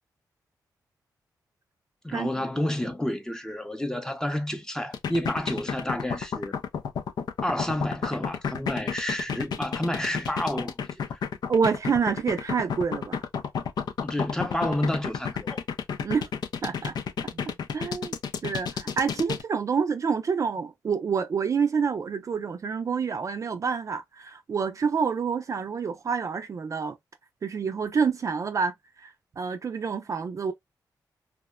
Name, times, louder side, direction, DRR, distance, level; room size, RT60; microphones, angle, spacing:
voice 1, 2.0-6.6 7.4-11.2 14.0-15.6, left 1 dB, 10° left, 0.6 m, -30 dB
sound 1, 4.9-19.4, left 6 dB, 75° left, 0.4 m, -31 dB
voice 2, 11.5-13.2 16.0-16.3 16.6-16.9 17.3-17.4 17.7-18.2 18.4-27.0 27.4-30.5, right 6 dB, 45° right, 0.4 m, -28 dB
2.8 x 2.1 x 2.2 m
cardioid pair, 80°, 7 cm